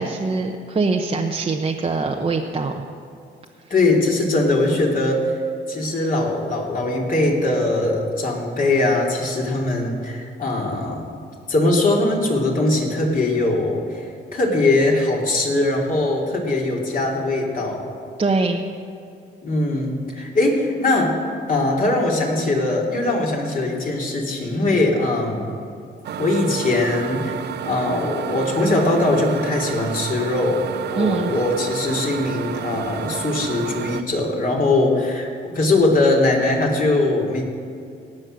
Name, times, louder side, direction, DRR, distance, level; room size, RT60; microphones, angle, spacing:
voice 1, 0.0-2.7 18.2-18.6 31.0-31.3, right 3 dB, 30° right, 1 dB, 0.8 m, -23 dB
voice 2, 3.7-5.4 5.7-11.2 11.5-17.9 19.4-21.2 21.5-25.5 26.2-30.6 30.9-37.4, left 2 dB, 45° left, -1 dB, 2.8 m, -21 dB
sound 1, 26.0-34.0, right 9 dB, 55° right, 0.6 m, -31 dB
18.0 x 6.4 x 6.3 m, 2.5 s
cardioid pair, 90°, 20 cm